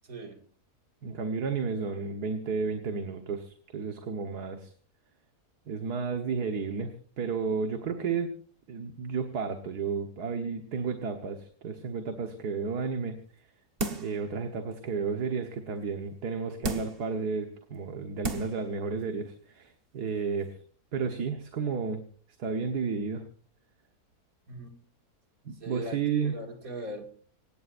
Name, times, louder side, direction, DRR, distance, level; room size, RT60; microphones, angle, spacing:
voice 1, 0.0-0.4 24.5-24.8 25.6-27.1, right 1 dB, 60° right, 4 dB, 2.8 m, -40 dB
voice 2, 1.0-4.7 5.7-8.3 8.7-13.2 14.0-20.6 20.9-22.0 22.4-23.2 25.5-26.3, right 5 dB, 80° right, 5 dB, 1.9 m, -32 dB
sound 1, 13.8-14.2 14.7-14.8 16.6-17.1 17.8-17.9 18.2-18.6 19.0-19.1, right 2 dB, 40° right, 1.6 m, -33 dB
26.5 x 17.5 x 2.6 m, 0.43 s
omnidirectional pair, 1.7 m